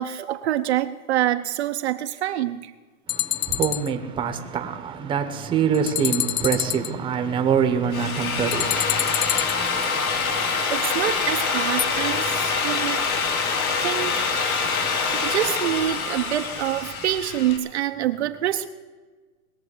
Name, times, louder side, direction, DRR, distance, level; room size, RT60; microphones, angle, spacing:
voice 1, 0.0-2.7 10.7-13.0 13.8-14.5 15.1-18.7, right 12 dB, 50° right, 0.7 m, -26 dB
sound 1, 3.1-3.9 5.7-6.9 8.5-9.9 11.8-11.9, left 13 dB, 45° left, 0.5 m, -26 dB
voice 2, 3.1-10.8 11.1-11.2 11.8-15.3, right 7 dB, 10° right, 1.0 m, -27 dB
Drill, 7.7-17.6, left 5 dB, 70° left, 3.1 m, -25 dB
20.5 x 7.0 x 9.7 m
hypercardioid pair, 150°, 44 cm